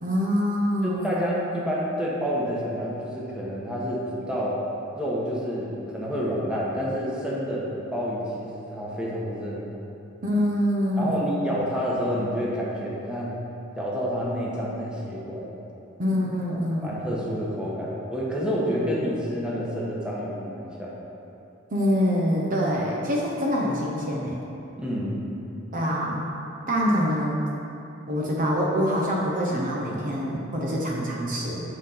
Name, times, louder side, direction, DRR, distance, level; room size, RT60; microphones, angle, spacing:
voice 1, 0.0-1.2 10.2-11.4 16.0-17.0 21.7-24.4 25.7-26.3 26.7-27.4 28.1-31.6, equal, 45° right, -3 dB, 0.9 m, -25 dB
voice 2, 0.8-4.6 5.0-9.6 11.0-13.3 13.8-15.5 16.5-20.9 24.8-25.2, equal, 5° right, -6 dB, 1.2 m, -29 dB
8.1 x 3.9 x 5.7 m, 2.9 s
head